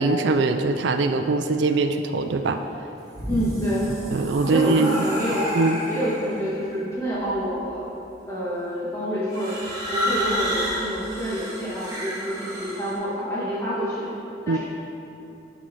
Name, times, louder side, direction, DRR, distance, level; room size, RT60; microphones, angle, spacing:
voice 1, 0.0-2.6 4.1-5.0 5.5-5.8 14.5-14.6, right 3 dB, 85° right, 7 dB, 0.4 m, -22 dB
sound 1, 2.9-6.4 7.3-7.7 9.3-12.9, equal, 20° right, 2.0 m, -30 dB
voice 2, 3.3-3.9 4.4-5.4 5.9-7.9 8.3-9.5 9.9-14.1 14.4-14.6, equal, 15° left, -10 dB, 1.7 m, -27 dB
11.0 x 5.8 x 3.8 m, 2.9 s
head